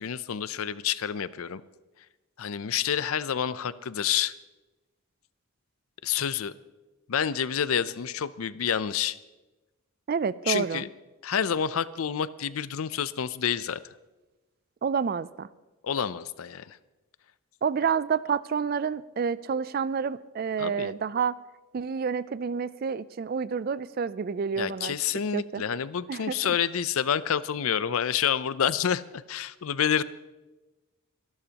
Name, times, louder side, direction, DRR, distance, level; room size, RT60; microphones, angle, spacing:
voice 1, 0.0-1.6 2.4-4.3 6.0-6.5 7.1-9.2 10.5-10.9 11.2-13.8 15.8-16.8 20.6-20.9 24.6-30.0, left 8 dB, 80° left, 16 dB, 0.5 m, -28 dB
voice 2, 10.1-10.8 14.8-15.5 17.6-21.4 21.7-25.0 25.3-25.6 26.1-26.4, right 6 dB, 45° right, 18 dB, 0.3 m, -29 dB
24.5 x 12.0 x 2.9 m, 1.1 s
head